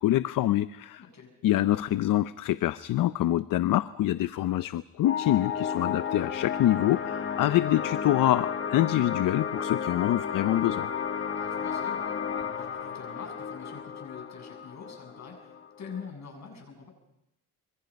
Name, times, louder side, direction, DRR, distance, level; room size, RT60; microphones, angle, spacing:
voice 1, 0.0-1.0 1.4-10.9, left 14 dB, 70° left, 14 dB, 0.7 m, -25 dB
voice 2, 1.0-1.3 11.3-16.9, left 5 dB, 50° left, 3 dB, 7.9 m, -45 dB
sound 1, 5.0-16.1, left 7 dB, 35° left, 2.0 m, -33 dB
26.0 x 24.0 x 5.3 m, 0.85 s
cardioid pair, 105°, 34 cm